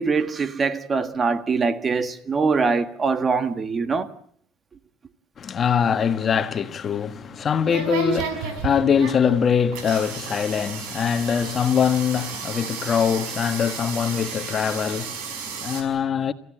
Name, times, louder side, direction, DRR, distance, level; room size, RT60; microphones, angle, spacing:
voice 1, 0.0-4.1, right 4 dB, 35° right, 1.7 m, -23 dB
voice 2, 5.4-16.3, left 7 dB, 40° left, 1.5 m, -23 dB
sound 1, 6.8-15.8, right 5 dB, 85° right, 4.9 m, -32 dB
30.0 x 15.5 x 8.9 m
cardioid pair, 100°, 0 cm